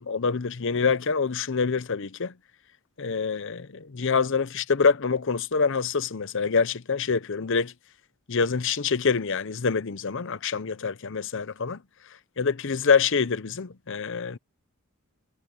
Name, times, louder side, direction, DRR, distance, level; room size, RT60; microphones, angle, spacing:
voice 1, 0.0-2.3 3.0-7.7 8.3-11.8 12.4-14.4, left 5 dB, 55° left, 0.7 m, -26 dB
head